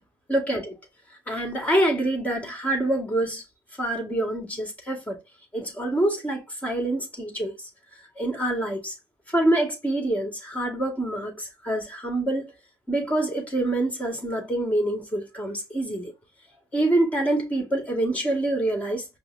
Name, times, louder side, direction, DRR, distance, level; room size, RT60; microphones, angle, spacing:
voice 1, 0.3-0.7 1.3-3.4 3.8-5.2 5.5-7.5 8.2-8.9 9.3-12.5 12.9-16.1 16.7-19.1, right 1 dB, 15° left, 2.0 m, -26 dB
5.2 x 2.2 x 2.7 m
supercardioid pair, 65°, 11 cm